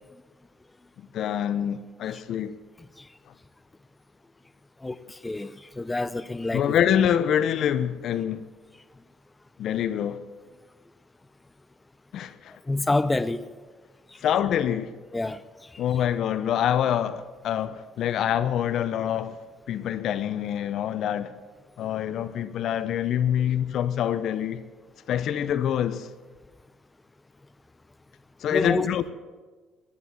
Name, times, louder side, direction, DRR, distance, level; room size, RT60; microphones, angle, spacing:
voice 1, 1.0-2.5 6.5-8.4 9.6-10.2 12.1-12.5 14.2-14.9 15.8-19.4 19.7-21.3 21.8-24.6 25.1-26.1 28.4-29.1, left 9 dB, 65° left, 0.8 m, -26 dB
voice 2, 4.8-6.7 12.7-13.5 15.1-15.4 28.5-28.9, left 2 dB, 20° left, 0.6 m, -27 dB
16.0 x 11.0 x 7.6 m
supercardioid pair, 65°, 0 cm